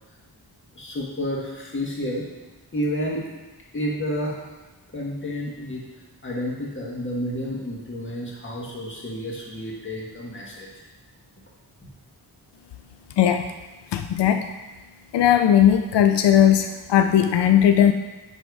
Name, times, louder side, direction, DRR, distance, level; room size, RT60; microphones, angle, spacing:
voice 1, 0.8-2.2 2.7-3.2 3.7-4.4 4.9-5.9 6.2-10.7, equal, 30° left, -4 dB, 1.8 m, -30 dB
voice 2, 13.2-13.5 13.9-14.6 15.1-17.9, left 10 dB, 85° left, 7 dB, 0.5 m, -18 dB
10.5 x 3.6 x 4.7 m, 1.2 s
wide cardioid pair, 125°, 40 cm